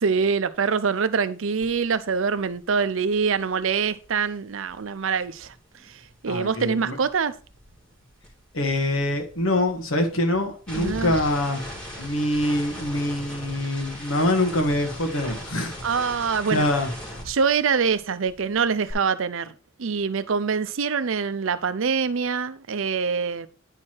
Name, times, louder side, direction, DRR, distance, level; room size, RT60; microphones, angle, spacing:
voice 1, 0.0-5.5 5.8-7.4 10.7-11.2 15.8-16.7 17.3-19.5 19.8-23.5, right 5 dB, 70° right, 0.6 m, -25 dB
sound 1, 1.6-1.8 2.1-6.5 6.7-18.0 18.3-18.9, equal, 5° left, 2.9 m, -40 dB
voice 2, 6.3-7.0 8.5-11.6 12.0-15.7 16.5-16.9, left 1 dB, 70° left, 1.6 m, -24 dB
9.7 x 4.7 x 4.4 m
head